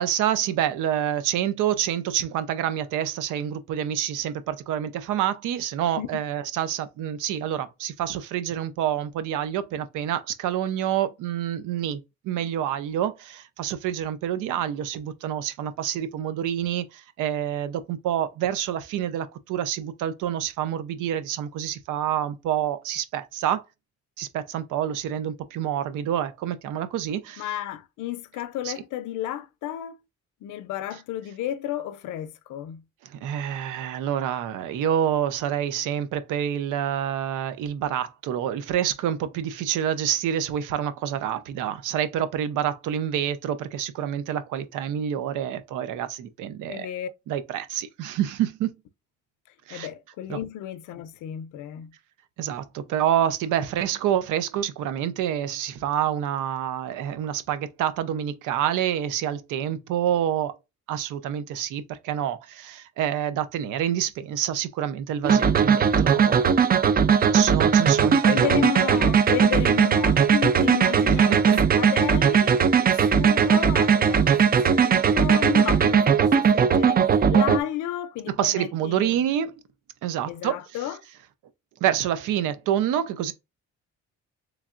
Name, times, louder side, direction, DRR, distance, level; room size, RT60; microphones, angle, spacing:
voice 1, 0.0-23.6 24.2-27.5 28.6-28.7 33.0-46.9 47.3-48.7 49.7-49.9 50.3-50.4 52.4-60.6 60.9-66.5 67.2-69.1 71.1-71.6 78.3-79.5 80.0-80.9 81.8-83.3, right 10 dB, 90° right, 0.6 m, -27 dB
voice 2, 27.4-30.0 30.4-32.8 46.7-47.1 49.7-51.9 68.2-79.1 80.3-81.0, left 12 dB, 85° left, 0.5 m, -32 dB
sound 1, 65.2-77.6, right 7 dB, 30° right, 0.4 m, -19 dB
3.5 x 3.2 x 2.4 m
cardioid pair, 90°, 30 cm